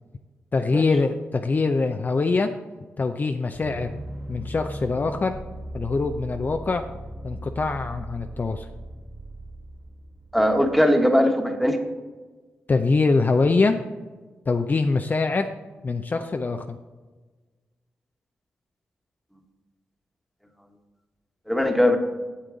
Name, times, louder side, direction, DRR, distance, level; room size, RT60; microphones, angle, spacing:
voice 1, 0.5-2.5 3.0-4.0 4.3-5.4 5.7-6.8 7.2-8.7 12.7-13.8 14.5-15.5 15.8-16.8, left 3 dB, 40° left, 6 dB, 0.5 m, -23 dB
sound 1, 3.5-10.7, right 1 dB, 65° right, 2.7 m, -38 dB
voice 2, 10.3-11.8 21.5-22.0, equal, ahead, 4 dB, 1.3 m, -20 dB
8.3 x 7.6 x 3.8 m, 1.3 s
supercardioid pair, 50°, 5 cm